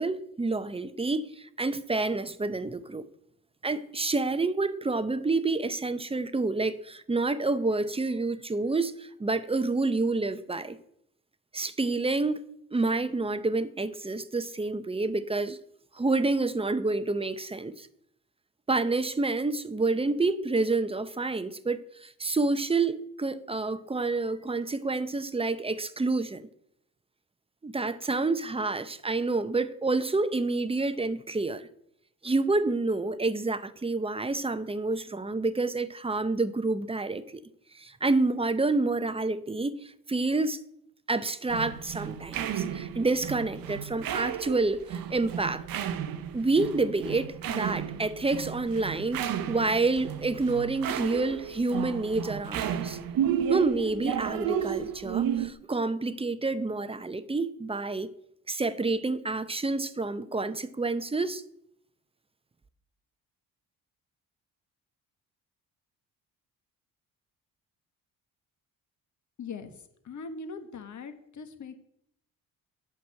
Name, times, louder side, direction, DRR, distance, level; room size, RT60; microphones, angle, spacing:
voice 1, 0.0-3.1 3.6-10.8 11.5-12.4 12.7-15.6 15.9-17.9 18.7-26.4 27.6-31.7 32.2-37.4 37.7-40.6 41.1-45.6 46.3-53.0 53.5-58.1 58.5-61.4, right 3 dB, 15° right, 0.7 m, -28 dB
sound 1, 41.5-55.5, right 9 dB, 70° right, 1.0 m, -33 dB
voice 2, 69.4-71.8, left 4 dB, 50° left, 1.5 m, -41 dB
8.6 x 6.1 x 7.6 m
cardioid pair, 90°, 36 cm